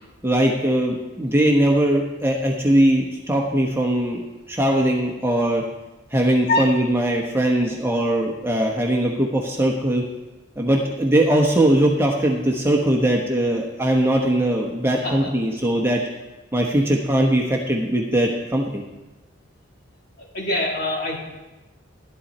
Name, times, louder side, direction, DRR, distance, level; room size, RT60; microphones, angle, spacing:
voice 1, 0.2-5.6 6.1-10.0 10.6-16.0 16.5-18.8, right 1 dB, 10° right, -1 dB, 1.1 m, -20 dB
voice 2, 20.3-21.2, left 2 dB, 55° left, -3 dB, 3.3 m, -23 dB
12.0 x 11.0 x 4.3 m, 1.1 s
head